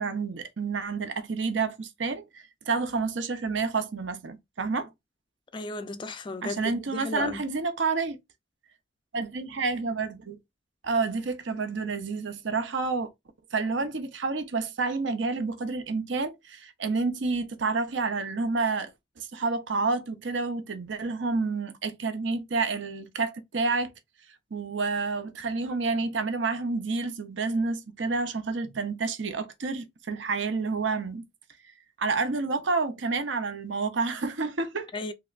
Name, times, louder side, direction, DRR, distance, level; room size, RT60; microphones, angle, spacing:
voice 1, 0.0-4.9 6.4-8.2 9.1-10.4 10.8-13.1 13.5-18.9 19.2-23.9 24.5-31.2 32.0-34.9, right 4 dB, 70° right, 0.7 m, -29 dB
voice 2, 5.5-7.4 34.9-35.1, left 3 dB, 25° left, 0.3 m, -34 dB
3.4 x 3.0 x 2.4 m
head